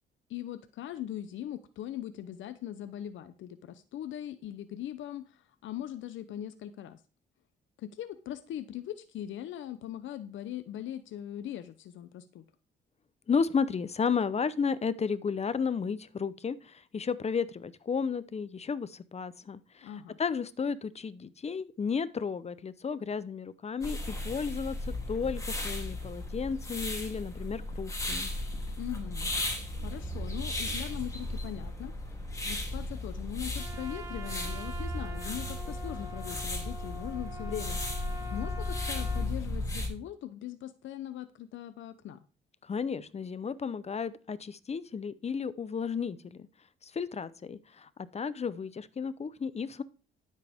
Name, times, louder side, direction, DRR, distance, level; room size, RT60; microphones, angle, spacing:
voice 1, 0.3-7.0 7.8-12.4 19.8-20.2 28.8-29.3 29.8-31.9 32.5-42.2, left 11 dB, 75° left, 12 dB, 0.7 m, -40 dB
voice 2, 13.3-19.9 20.2-28.3 42.6-46.5 46.8-49.8, left 6 dB, 30° left, 16 dB, 0.8 m, -33 dB
sound 1, 23.8-39.9, left 1 dB, 15° left, 3.0 m, -35 dB
Trumpet, 33.5-39.3, left 1 dB, 15° right, 1.9 m, -45 dB
12.5 x 7.6 x 3.6 m, 0.36 s
cardioid pair, 90°, 20 cm